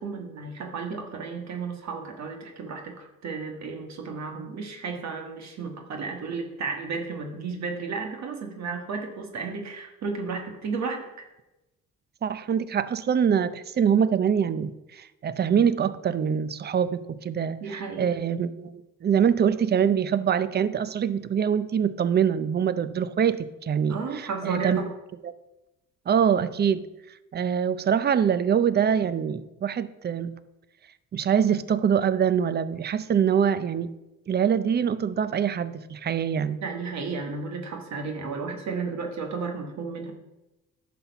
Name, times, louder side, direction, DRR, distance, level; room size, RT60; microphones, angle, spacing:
voice 1, 0.0-11.3 17.6-18.1 23.9-24.8 36.6-40.1, right 4 dB, 65° right, 3 dB, 1.5 m, -33 dB
voice 2, 12.2-24.8 25.2-25.3 26.1-26.8 27.3-30.4 31.1-33.9 34.3-36.6, right 8 dB, 35° right, 14 dB, 0.5 m, -24 dB
11.0 x 4.2 x 6.9 m, 0.98 s
cardioid pair, 90°, 30 cm